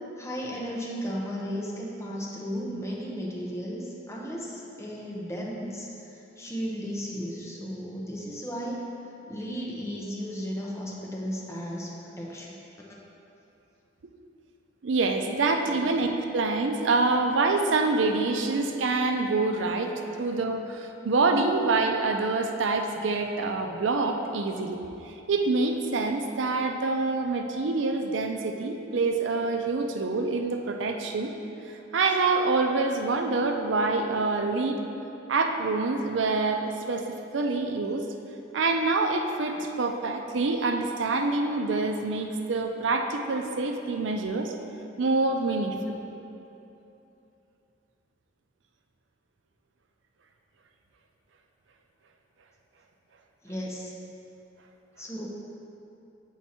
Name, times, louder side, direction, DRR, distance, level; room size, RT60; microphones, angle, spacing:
voice 1, 0.2-8.8 9.3-12.6 15.8-15.9 45.8-46.0 53.4-53.9 55.0-55.3, equal, 15° left, -4 dB, 0.8 m, -35 dB
voice 2, 14.8-31.3 31.7-34.8 35.3-38.1 38.5-44.5 45.0-45.9, right 3 dB, 75° right, 4 dB, 0.5 m, -26 dB
7.3 x 4.5 x 4.2 m, 2.9 s
head